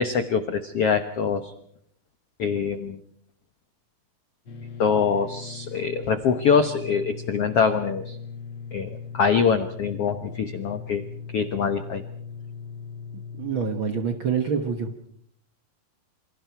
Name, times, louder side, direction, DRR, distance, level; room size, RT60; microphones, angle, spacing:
voice 1, 0.0-1.5 2.4-3.0 4.8-8.2 8.7-11.0 11.3-12.0, left 6 dB, 70° left, 8 dB, 1.4 m, -24 dB
sound 1, 4.5-14.0, left 6 dB, 40° left, 2.3 m, -39 dB
voice 2, 13.4-15.1, right 6 dB, 80° right, 6 dB, 1.1 m, -26 dB
28.0 x 26.0 x 4.6 m, 0.68 s
omnidirectional pair, 4.4 m